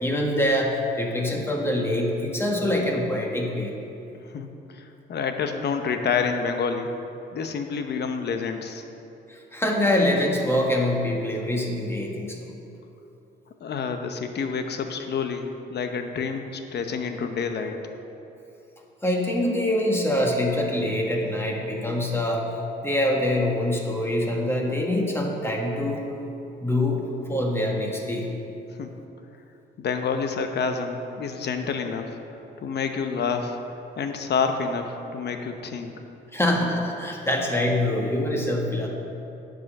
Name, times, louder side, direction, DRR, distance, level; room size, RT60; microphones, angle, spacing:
voice 1, 0.0-3.7 9.3-12.5 19.0-22.5 22.8-26.1 26.6-27.0 27.3-28.3 36.3-38.9, left 1 dB, 10° left, -1 dB, 1.5 m, -24 dB
voice 2, 4.2-6.9 7.3-8.8 13.6-15.4 15.7-17.8 28.8-28.9 29.8-32.2 32.6-33.6 34.0-35.9, left 5 dB, 55° left, 6 dB, 0.9 m, -28 dB
9.4 x 5.1 x 6.4 m, 2.8 s
cardioid pair, 90°, 20 cm